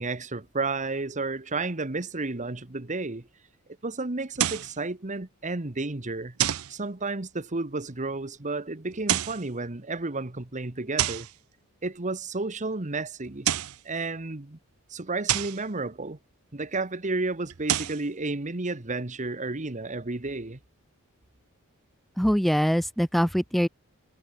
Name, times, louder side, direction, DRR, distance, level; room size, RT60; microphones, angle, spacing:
voice 1, 0.0-3.3 3.8-6.3 6.7-11.3 11.8-13.5 13.8-14.6 14.9-16.2 16.5-20.6, right 3 dB, 35° right, 1.3 m, -32 dB
sound 1, 4.4-4.7 6.4-6.7 8.9-9.4 11.0-11.3 13.3-13.8 15.3-15.6 17.5-18.0, right 11 dB, 70° right, 0.7 m, -27 dB
voice 2, 22.2-23.7, equal, ahead, 0.4 m, -23 dB
head